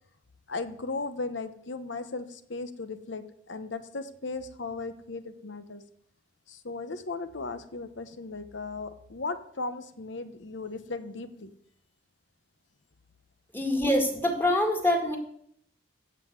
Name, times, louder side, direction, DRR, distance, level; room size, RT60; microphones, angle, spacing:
voice 1, 0.5-5.8 6.5-11.5, left 3 dB, 60° left, 11 dB, 0.9 m, -36 dB
voice 2, 13.5-15.2, left 1 dB, 10° left, 2 dB, 1.9 m, -25 dB
15.5 x 5.5 x 8.1 m, 0.69 s
head